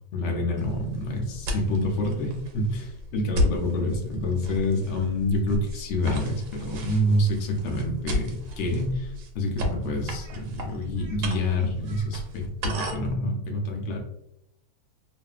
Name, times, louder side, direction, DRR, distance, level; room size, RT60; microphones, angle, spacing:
voice 1, 0.0-14.0, left 1 dB, 65° left, 0 dB, 0.7 m, -27 dB
sound 1, 0.6-13.2, left 1 dB, 75° right, 1.1 m, -34 dB
2.6 x 2.4 x 2.3 m, 0.82 s
omnidirectional pair, 1.8 m